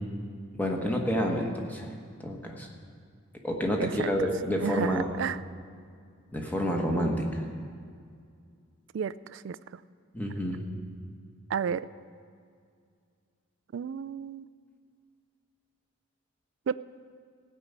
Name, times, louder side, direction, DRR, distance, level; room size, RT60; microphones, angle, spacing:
voice 1, 0.5-1.9 2.2-2.7 3.4-5.1 6.3-7.4 10.1-10.7, equal, 10° left, 1 dB, 1.2 m, -29 dB
voice 2, 4.6-5.4 8.9-9.6 11.5-11.9 13.7-14.4 16.7-16.8, right 7 dB, 60° right, 16 dB, 0.3 m, -31 dB
16.0 x 5.4 x 8.1 m, 2.2 s
head